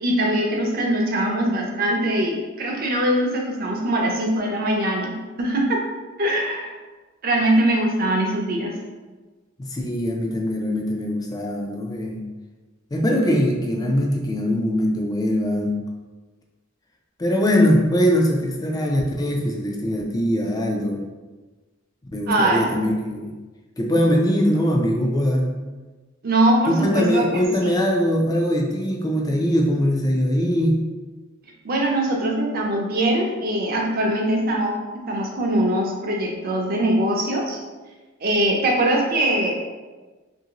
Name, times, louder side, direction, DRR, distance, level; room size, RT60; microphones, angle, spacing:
voice 1, 0.0-5.8 6.2-6.7 7.2-8.8 22.3-22.7 26.2-27.8 31.6-37.6 38.2-39.5, right 1 dB, 50° right, 0 dB, 0.5 m, -22 dB
voice 2, 9.6-12.2 12.9-15.8 17.2-21.0 22.1-23.4 23.8-25.6 26.7-30.8, equal, 20° left, 0 dB, 0.4 m, -21 dB
2.8 x 2.7 x 2.9 m, 1.3 s
head